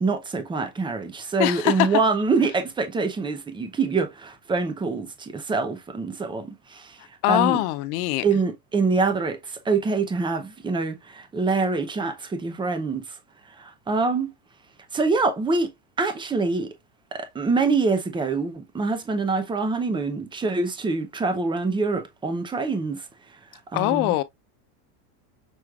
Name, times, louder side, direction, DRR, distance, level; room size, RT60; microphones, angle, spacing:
voice 1, 0.0-7.0 7.3-7.6 8.2-13.2 13.6-14.3 14.9-15.7 16.0-16.7 17.1-23.1 23.7-24.2, right 4 dB, 10° right, 0.6 m, -25 dB
voice 2, 1.4-1.9 7.2-8.2 23.7-24.2, left 16 dB, 60° left, 0.7 m, -22 dB
6.1 x 3.2 x 2.3 m
supercardioid pair, 115°, 49 cm